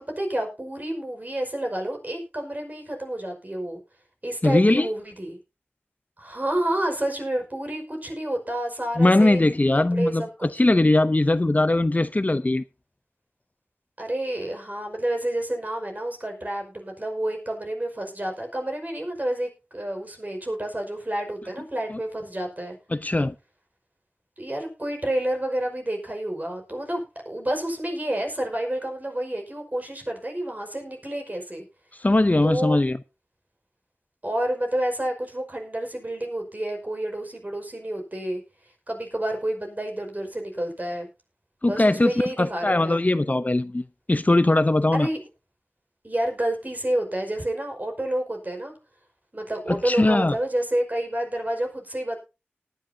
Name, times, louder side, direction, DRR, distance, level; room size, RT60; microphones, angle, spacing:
voice 1, 0.0-3.8 4.2-5.4 6.2-9.5 9.9-10.3 14.0-22.8 24.4-31.6 32.4-32.8 34.2-38.4 38.9-41.1 41.7-43.0 44.9-45.2 46.0-48.7 49.3-52.2, right 1 dB, 40° right, 5.2 m, -29 dB
voice 2, 4.4-4.9 9.0-12.6 21.9-22.0 22.9-23.3 32.0-33.0 41.6-45.1 49.7-50.4, left 2 dB, 35° left, 0.7 m, -20 dB
19.0 x 10.5 x 2.8 m
wide cardioid pair, 45°, 4 cm